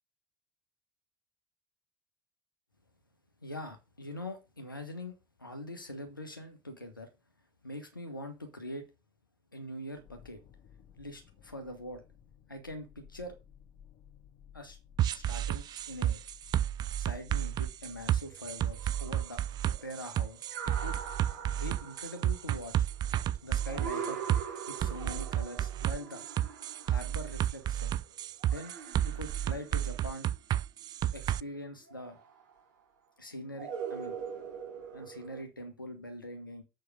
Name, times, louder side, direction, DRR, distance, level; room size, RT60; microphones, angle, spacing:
voice 1, 3.4-5.1 5.4-7.1 7.6-8.9 9.5-10.4 11.0-12.0 12.5-13.4 14.5-14.8 15.1-16.2 17.0-19.4 19.8-21.0 21.6-22.8 23.4-24.2 24.7-26.2 26.8-28.0 28.4-28.7 29.0-30.3 31.1-32.2 33.2-34.2 34.9-36.6, left 1 dB, 85° left, 6 dB, 1.4 m, -43 dB
sound 1, 9.9-18.2, left 8 dB, 50° left, 1.7 m, -57 dB
sound 2, 15.0-31.4, right 11 dB, 40° right, 0.4 m, -31 dB
sound 3, 18.2-27.9 28.4-30.4 31.8-32.6 33.6-35.4, right 7 dB, 65° right, 1.7 m, -43 dB
7.6 x 4.8 x 6.5 m, 0.26 s
figure-of-eight pair, 55°, 11 cm